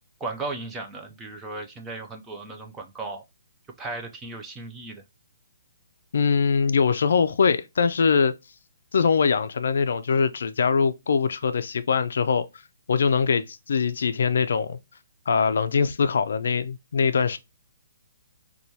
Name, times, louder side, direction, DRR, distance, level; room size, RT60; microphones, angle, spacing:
voice 1, 0.2-3.2 3.8-5.0, right 3 dB, 10° right, 0.4 m, -36 dB
voice 2, 6.1-8.3 8.9-12.4 12.9-14.8 15.3-17.4, left 5 dB, 70° left, 0.3 m, -22 dB
4.3 x 2.3 x 2.7 m
hypercardioid pair, 165°, 0 cm